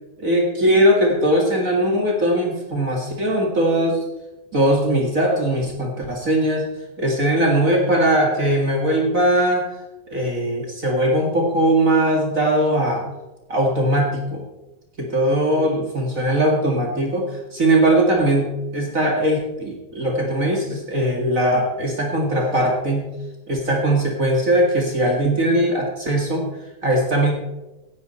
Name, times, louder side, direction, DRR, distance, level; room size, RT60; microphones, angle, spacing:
voice 1, 0.2-4.0 4.5-6.7 7.0-9.7 10.1-13.1 13.5-14.4 15.0-23.1 23.5-26.4 26.8-27.3, right 1 dB, 50° right, 0 dB, 0.9 m, -20 dB
17.0 x 10.5 x 4.2 m, 1.0 s
omnidirectional pair, 4.6 m